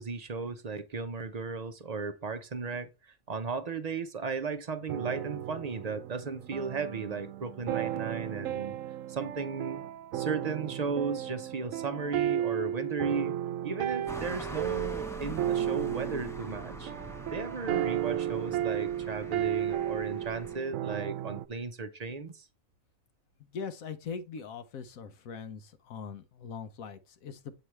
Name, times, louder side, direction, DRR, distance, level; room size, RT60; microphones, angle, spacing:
voice 1, 0.0-8.8 9.1-9.8 10.1-13.4 13.6-16.9 17.3-22.5, right 4 dB, 45° right, 0.5 m, -35 dB
sound 1, 4.9-21.5, right 11 dB, 75° right, 1.0 m, -34 dB
sound 2, 14.1-20.6, equal, 5° left, 0.5 m, -44 dB
voice 2, 23.4-27.6, left 6 dB, 80° left, 1.3 m, -41 dB
7.9 x 6.0 x 3.2 m
omnidirectional pair, 1.4 m